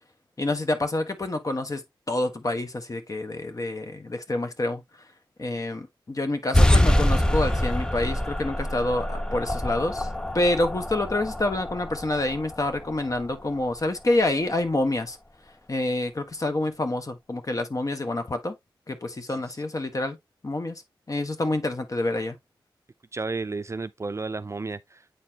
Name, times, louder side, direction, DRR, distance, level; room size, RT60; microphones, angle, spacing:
voice 1, 0.4-1.8 2.1-4.8 5.4-10.1 10.3-15.2 15.7-18.5 18.9-20.2 20.4-20.8 21.1-22.4, left 2 dB, 40° left, 1.4 m, -27 dB
sound 1, 6.5-13.6, left 1 dB, 10° left, 0.8 m, -25 dB
voice 2, 23.1-25.2, right 3 dB, 35° right, 0.5 m, -32 dB
8.4 x 4.3 x 2.9 m
cardioid pair, 55°, 9 cm